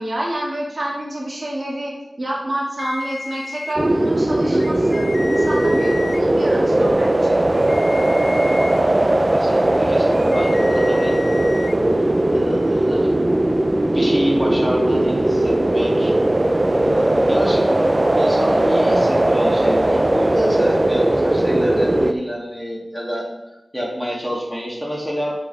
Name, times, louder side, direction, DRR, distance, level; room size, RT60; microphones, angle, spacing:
voice 1, 0.0-7.4, right 1 dB, 55° right, -4 dB, 2.3 m, -27 dB
sound 1, 2.8-3.7 4.5-6.2 7.5-8.8 10.1-11.8, left 3 dB, 60° left, 0.4 m, -33 dB
sound 2, 3.8-22.1, right 1 dB, 30° right, 0.6 m, -18 dB
voice 2, 9.3-11.1 12.3-13.4 13.9-16.1 16.7-25.3, equal, ahead, -4 dB, 2.9 m, -27 dB
9.3 x 7.2 x 3.6 m, 0.92 s
wide cardioid pair, 60°, 0 cm